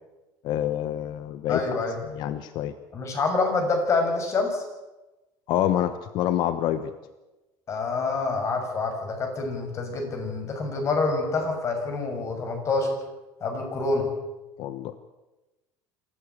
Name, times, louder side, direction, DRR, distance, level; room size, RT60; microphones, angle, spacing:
voice 1, 0.4-1.7 2.1-2.7 5.5-6.9 14.6-15.0, left 11 dB, 60° left, 12 dB, 1.1 m, -27 dB
voice 2, 1.5-2.0 2.9-4.6 7.7-12.9 13.4-14.1, left 3 dB, 35° left, 4 dB, 6.6 m, -26 dB
26.0 x 14.5 x 8.3 m, 1.1 s
cardioid pair, 130°, 8 cm